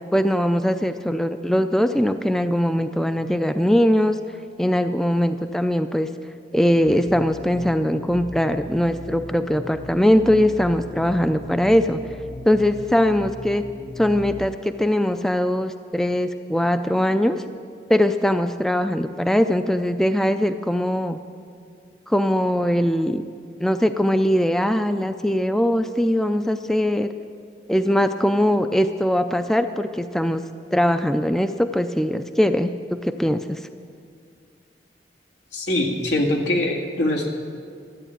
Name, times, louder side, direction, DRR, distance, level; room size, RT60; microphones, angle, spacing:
voice 1, 0.1-4.2 4.6-6.1 6.5-12.0 12.5-13.6 14.0-17.4 17.9-21.2 22.1-23.2 23.6-27.1 27.7-30.4 30.7-33.6, equal, ahead, 9 dB, 0.3 m, -21 dB
sound 1, 6.8-14.5, left 2 dB, 45° left, 0.8 m, -38 dB
voice 2, 35.5-37.3, left 1 dB, 90° left, -1 dB, 2.2 m, -23 dB
13.5 x 9.0 x 8.8 m, 2.2 s
head